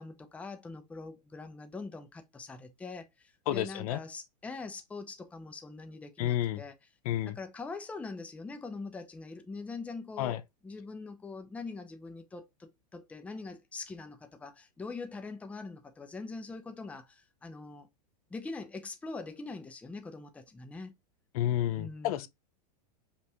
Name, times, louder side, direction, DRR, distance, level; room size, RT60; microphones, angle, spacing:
voice 1, 0.0-6.7 7.2-17.9 18.3-20.9 21.7-22.3, left 3 dB, 5° left, 0.5 m, -43 dB
voice 2, 3.5-4.0 6.2-6.6 7.0-7.4 10.2-10.4 21.3-22.3, left 13 dB, 60° left, 0.4 m, -30 dB
5.3 x 2.4 x 2.8 m
hypercardioid pair, 125°, 21 cm